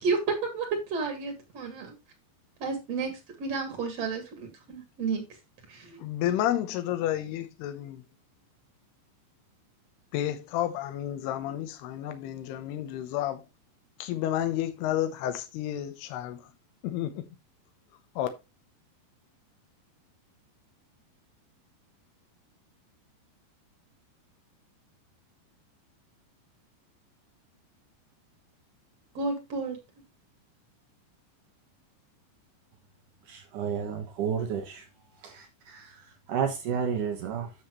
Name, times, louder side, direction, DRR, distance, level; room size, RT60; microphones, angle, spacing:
voice 1, 0.0-1.9 2.6-5.3 5.7-6.0 29.1-29.8, right 4 dB, 50° right, 2.2 m, -31 dB
voice 2, 6.0-8.0 10.1-13.4 14.0-16.4 16.8-17.2 18.2-18.3, left 12 dB, 75° left, 2.6 m, -31 dB
voice 3, 33.3-34.9 35.2-37.5, right 7 dB, 70° right, 2.0 m, -32 dB
9.8 x 7.1 x 3.1 m
omnidirectional pair, 5.4 m